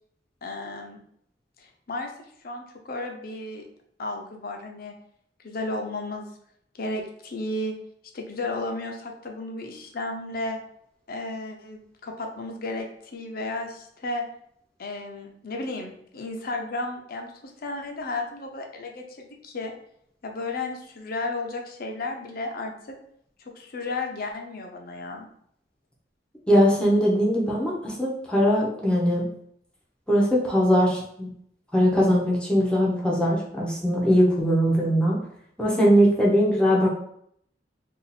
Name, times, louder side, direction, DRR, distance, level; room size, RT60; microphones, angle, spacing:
voice 1, 0.4-1.0 1.6-2.1 2.4-3.6 4.0-4.9 5.4-6.3 6.7-7.7 8.1-10.6 11.1-14.2 14.8-19.7 20.2-22.9 23.5-25.3, left 2 dB, 55° left, 3 dB, 0.6 m, -33 dB
voice 2, 26.5-29.3 30.1-31.3 31.7-35.2 35.6-36.9, equal, 5° left, -5 dB, 0.7 m, -21 dB
2.7 x 2.5 x 4.0 m, 0.69 s
head